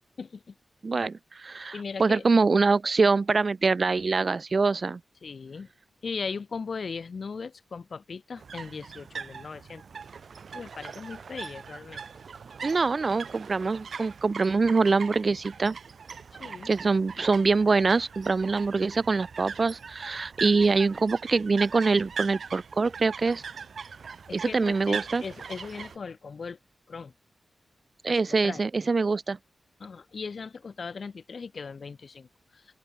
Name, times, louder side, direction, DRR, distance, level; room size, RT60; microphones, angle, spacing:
voice 1, 0.2-0.5 1.7-2.2 5.2-5.7 6.0-9.8 10.5-12.0 16.4-16.7 24.3-26.6 26.9-27.1 28.1-28.2 28.4-28.6 29.8-32.3, left 5 dB, 55° left, 0.9 m, -38 dB
voice 2, 0.8-5.0 12.6-15.8 16.7-23.4 24.3-25.2 28.0-29.4, right 4 dB, 40° right, 0.5 m, -24 dB
sound 1, 8.4-26.0, right 6 dB, 65° right, 1.1 m, -41 dB
open air
wide cardioid pair, 135°, 0 cm